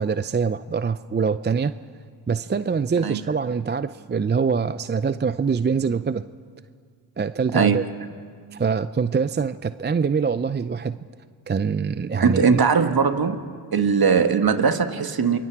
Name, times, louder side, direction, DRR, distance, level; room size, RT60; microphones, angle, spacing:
voice 1, 0.0-1.7 2.3-6.2 7.2-7.8 8.5-11.0 11.5-12.6, right 5 dB, 25° right, 13 dB, 0.5 m, -24 dB
voice 2, 12.2-13.4 13.7-15.4, right 6 dB, 50° right, 8 dB, 1.7 m, -20 dB
28.5 x 22.5 x 4.8 m, 2.1 s
supercardioid pair, 45°, 48 cm